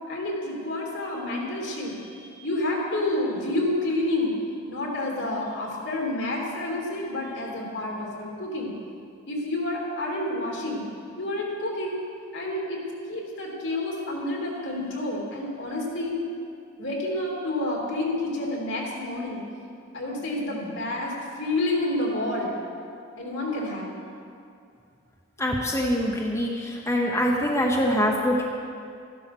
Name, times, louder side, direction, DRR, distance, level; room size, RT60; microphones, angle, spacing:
voice 1, 0.1-4.3 4.7-8.7 9.3-10.9 11.2-12.0 12.3-12.8 13.1-16.2 16.8-19.4 19.9-22.6 23.2-24.0, left 1 dB, 70° left, -2 dB, 3.2 m, -29 dB
voice 2, 25.4-28.4, equal, 15° left, -1 dB, 0.9 m, -24 dB
13.5 x 11.5 x 6.1 m, 2.4 s
head